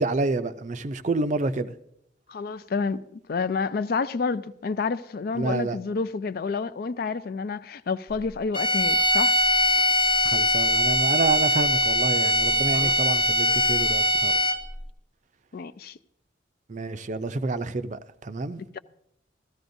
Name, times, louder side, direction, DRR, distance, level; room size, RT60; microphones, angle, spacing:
voice 1, 0.0-1.7 5.4-5.8 10.2-14.3 16.7-18.6, right 3 dB, 40° right, 0.5 m, -28 dB
voice 2, 2.3-9.4 12.7-12.9 15.5-16.0 18.7-18.8, left 4 dB, 50° left, 0.4 m, -29 dB
sound 1, 8.5-14.8, left 1 dB, 30° left, 0.9 m, -22 dB
15.5 x 13.5 x 2.6 m
head